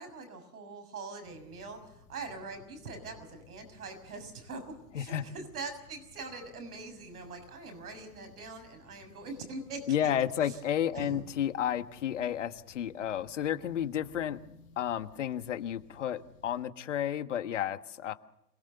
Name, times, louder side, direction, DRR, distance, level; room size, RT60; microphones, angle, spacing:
voice 1, 0.0-10.1 10.5-10.6 10.9-11.2, right 3 dB, 65° right, 7 dB, 6.6 m, -43 dB
sound 1, 1.2-16.6, left 6 dB, 20° left, 2.7 m, -59 dB
voice 2, 4.9-5.3 9.9-14.4 14.8-18.1, left 10 dB, 45° left, 11 dB, 1.3 m, -32 dB
27.0 x 18.0 x 6.8 m, 0.83 s
hypercardioid pair, 160°, 49 cm